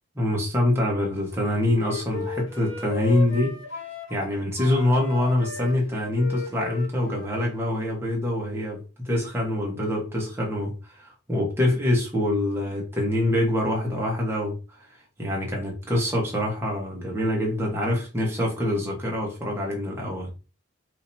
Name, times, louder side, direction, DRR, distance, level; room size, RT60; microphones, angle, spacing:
voice 1, 0.2-3.6 4.1-14.5 15.2-20.3, left 1 dB, 10° right, 1.2 m, -25 dB
Wind instrument woodwind instrument, 1.3-4.3 4.6-7.9, left 5 dB, 75° left, 1.1 m, -36 dB
5.0 x 2.8 x 2.8 m
head